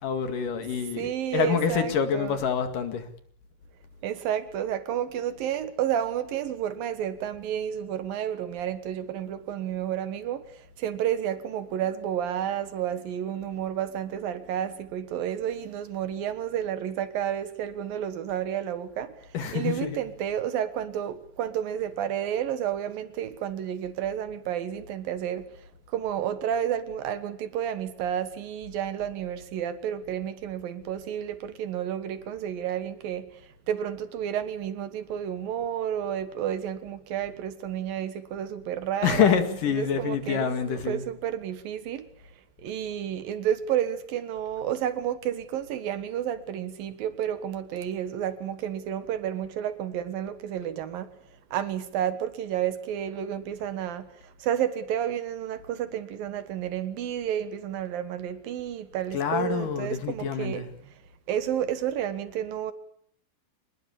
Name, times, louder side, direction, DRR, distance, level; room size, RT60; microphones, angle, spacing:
voice 1, 0.0-3.1 19.3-20.0 39.0-41.0 59.1-60.7, left 7 dB, 55° left, 3.2 m, -27 dB
voice 2, 1.0-2.4 4.0-25.5 25.9-39.4 39.7-42.1 42.6-51.1 51.5-60.6 61.3-62.7, right 10 dB, 65° right, 2.6 m, -31 dB
26.5 x 20.5 x 7.3 m
omnidirectional pair, 5.4 m